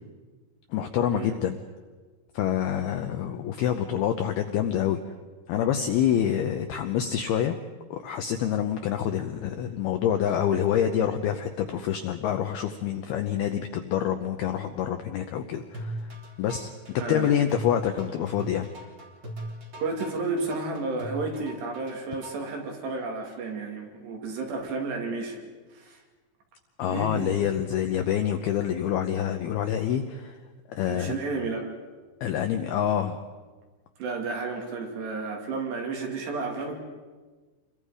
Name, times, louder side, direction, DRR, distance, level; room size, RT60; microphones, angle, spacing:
voice 1, 0.7-1.6 2.3-5.0 5.5-7.6 7.9-16.1 16.4-16.7 17.1-18.7 26.8-30.4 30.7-31.2 32.2-33.2, left 9 dB, 85° left, 6 dB, 2.2 m, -27 dB
sound 1, 15.7-22.6, right 1 dB, 30° right, 2.9 m, -38 dB
voice 2, 19.8-25.4 25.7-26.0 26.9-27.4 30.9-31.7 34.0-36.8, right 3 dB, 60° right, 1 dB, 4.3 m, -32 dB
28.5 x 23.0 x 5.0 m, 1.3 s
omnidirectional pair, 5.6 m